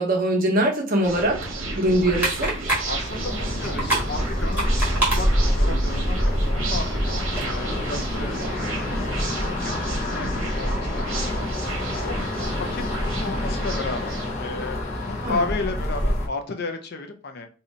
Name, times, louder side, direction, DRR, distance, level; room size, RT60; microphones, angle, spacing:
voice 1, 0.0-1.5 1.7-2.6 15.2-15.5, right 1 dB, 45° right, 1 dB, 0.9 m, -22 dB
sound 1, 1.0-14.3, right 2 dB, 75° right, 0.9 m, -32 dB
sound 2, 2.0-7.5, right 1 dB, 10° right, 1.2 m, -30 dB
voice 2, 2.9-8.4 9.5-11.4 11.9-12.2 12.5-17.5, left 3 dB, 50° left, 6 dB, 0.5 m, -33 dB
sound 3, 3.1-16.3, left 1 dB, 35° left, 0.9 m, -26 dB
2.7 x 2.6 x 4.2 m, 0.37 s
head